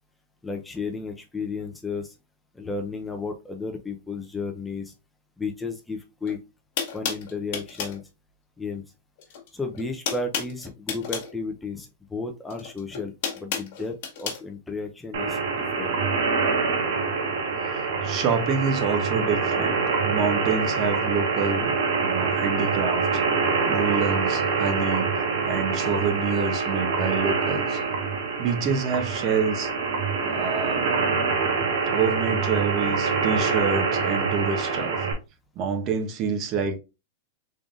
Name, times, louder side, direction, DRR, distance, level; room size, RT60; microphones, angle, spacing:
voice 1, 0.4-2.1 2.5-4.9 5.4-6.4 6.9-8.0 8.6-8.8 9.5-15.9, left 4 dB, 10° left, 0.6 m, -33 dB
sound 1, 6.2-6.3 6.8-8.0 9.2-9.5 9.7-11.3 12.5-14.4, left 7 dB, 60° left, 1.4 m, -31 dB
sound 2, 15.1-35.1, right 4 dB, 70° right, 1.3 m, -25 dB
voice 2, 18.0-23.2 23.7-25.1 25.4-27.8 28.4-29.7 30.2-30.9 31.9-35.1 35.6-36.8, right 5 dB, 40° right, 0.8 m, -27 dB
3.8 x 3.5 x 2.5 m
hypercardioid pair, 125°, 0 cm